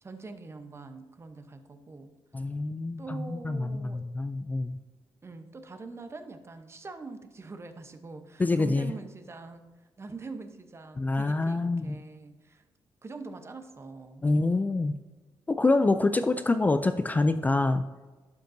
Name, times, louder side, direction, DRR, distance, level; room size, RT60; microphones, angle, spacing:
voice 1, 0.0-2.1 3.0-4.0 5.2-9.7 10.0-12.6 13.0-14.2, right 3 dB, 30° right, 8 dB, 0.8 m, -43 dB
voice 2, 2.3-4.8 8.4-8.9 11.0-12.0 14.2-14.9 15.5-17.8, left 2 dB, 20° left, 9 dB, 0.4 m, -26 dB
11.5 x 5.2 x 2.7 m, 1.3 s
cardioid pair, 85°, 9 cm